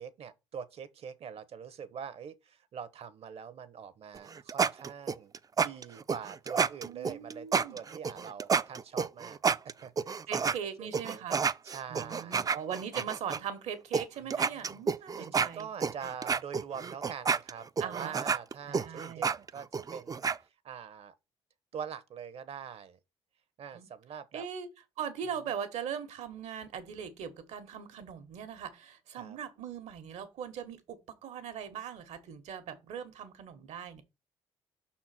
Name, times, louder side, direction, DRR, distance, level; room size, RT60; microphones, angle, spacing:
voice 1, 0.0-9.4 9.6-10.5 10.8-12.6 14.2-14.8 15.2-21.1 21.7-23.0 23.6-24.5 29.2-29.4, right 7 dB, 60° right, 1.1 m, -44 dB
sound 1, 4.1-10.6 10.9-13.4 13.9-14.0 14.3-20.4, right 5 dB, 30° right, 0.5 m, -30 dB
voice 2, 6.8-7.8 10.3-11.4 11.9-15.7 17.8-18.1 18.7-19.3 23.7-23.9 24.3-24.7 25.0-34.0, right 8 dB, 75° right, 1.6 m, -40 dB
6.0 x 4.3 x 5.9 m
supercardioid pair, 65°, 12 cm